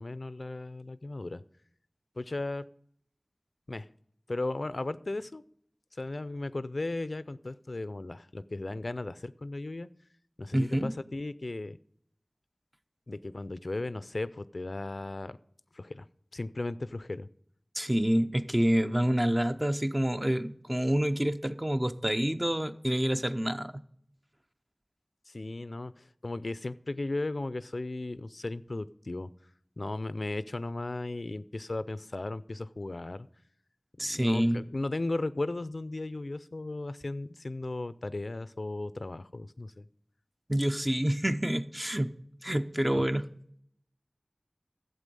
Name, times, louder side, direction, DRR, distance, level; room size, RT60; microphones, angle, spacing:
voice 1, 0.0-1.4 2.2-2.7 3.7-3.9 4.3-5.4 6.0-9.9 10.4-11.8 13.1-15.4 15.7-16.1 16.3-17.3 25.3-29.3 29.8-33.3 34.0-39.9 43.0-43.1, left 2 dB, 80° left, 16 dB, 0.4 m, -36 dB
voice 2, 10.5-10.9 17.7-23.8 34.0-34.6 40.5-43.2, right 1 dB, 20° right, 9 dB, 0.7 m, -28 dB
11.5 x 7.8 x 5.3 m, 0.65 s
wide cardioid pair, 40°, 0 cm